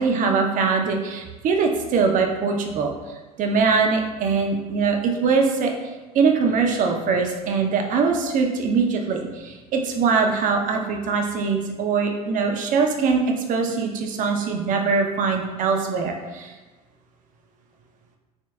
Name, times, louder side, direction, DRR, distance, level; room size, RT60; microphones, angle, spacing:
voice 1, 0.0-2.9 3.4-5.7 6.1-16.5, right 5 dB, 45° right, 3 dB, 0.7 m, -22 dB
6.4 x 2.9 x 2.3 m, 1.2 s
figure-of-eight pair, 65°, 20 cm